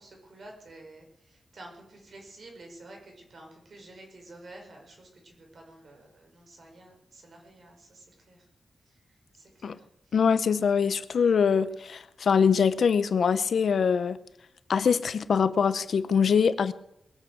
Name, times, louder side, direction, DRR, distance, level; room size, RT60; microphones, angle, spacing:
voice 1, 0.0-8.5 8.9-10.3, right 2 dB, 60° right, 1 dB, 5.4 m, -50 dB
voice 2, 10.1-14.2 14.7-16.7, left 6 dB, 75° left, 14 dB, 0.8 m, -23 dB
21.5 x 8.0 x 8.0 m, 0.79 s
wide cardioid pair, 110°, 0 cm